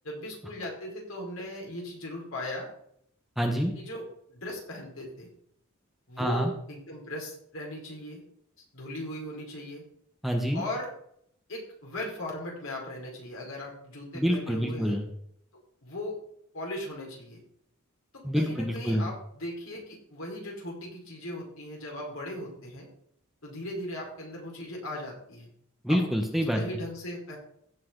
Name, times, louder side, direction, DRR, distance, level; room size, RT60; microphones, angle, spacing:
voice 1, 0.0-2.7 3.7-4.0 4.3-5.3 6.1-8.2 8.7-9.8 10.5-10.9 11.5-15.0 15.8-16.1 16.5-17.4 18.1-22.9 23.4-25.5 25.9-26.0 26.5-27.4, left 1 dB, 75° left, -1 dB, 5.0 m, -38 dB
voice 2, 3.4-3.7 6.2-6.5 10.2-10.6 14.1-15.1 18.2-19.1 25.8-26.6, equal, ahead, 2 dB, 1.3 m, -27 dB
16.0 x 7.7 x 4.0 m, 0.69 s
head